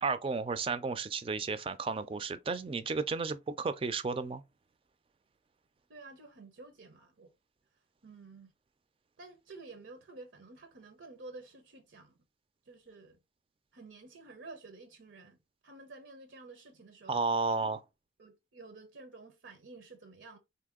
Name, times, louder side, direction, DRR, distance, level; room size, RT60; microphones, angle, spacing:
voice 1, 0.0-4.4 17.1-17.8, right 4 dB, 30° right, 0.4 m, -33 dB
voice 2, 5.9-7.3 8.0-8.5 9.2-12.2 12.6-13.2 13.7-15.4 15.6-17.2 18.2-20.4, right 3 dB, 80° right, 0.8 m, -51 dB
4.1 x 2.8 x 3.6 m
head